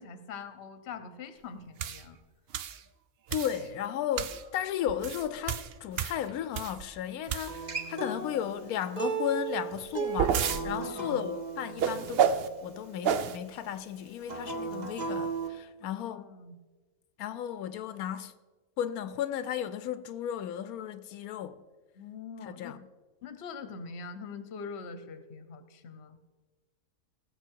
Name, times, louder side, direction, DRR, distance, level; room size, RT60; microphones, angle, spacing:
voice 1, 0.0-2.2 10.7-11.2 15.8-16.6 22.0-22.8 23.2-26.2, left 5 dB, 50° left, 1.1 m, -43 dB
sound 1, 1.8-2.0 2.5-2.8 3.3-3.6 4.2-4.4 4.9-6.9 7.3-7.8 9.7-10.6 11.8-12.5 13.0-13.4, right 8 dB, 60° right, 0.7 m, -30 dB
voice 2, 3.3-12.3 12.6-16.3 17.2-18.3 18.8-21.5 22.4-22.8, left 10 dB, 85° left, 1.1 m, -34 dB
Acoustic guitar, 7.5-12.7 14.2-15.5, right 4 dB, 30° right, 1.1 m, -35 dB
18.5 x 7.5 x 4.6 m
omnidirectional pair, 1.5 m